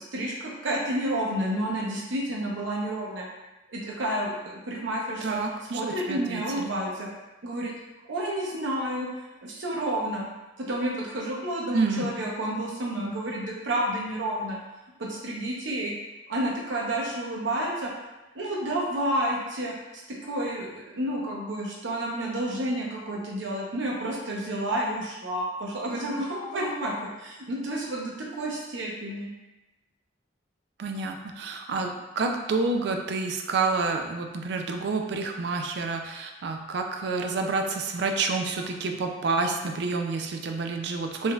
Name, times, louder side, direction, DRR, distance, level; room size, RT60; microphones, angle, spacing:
voice 1, 0.0-3.3 3.7-5.4 5.7-7.1 7.4-7.7 8.1-10.2 10.6-14.6 15.0-15.9 16.3-17.9 18.3-19.7 20.2-26.9 27.2-29.3, right 1 dB, 85° right, -3 dB, 0.8 m, -30 dB
voice 2, 5.2-5.8 6.1-6.7 11.7-12.1 30.8-41.3, right 3 dB, 60° right, 4 dB, 0.3 m, -28 dB
3.7 x 2.6 x 2.3 m, 1.1 s
head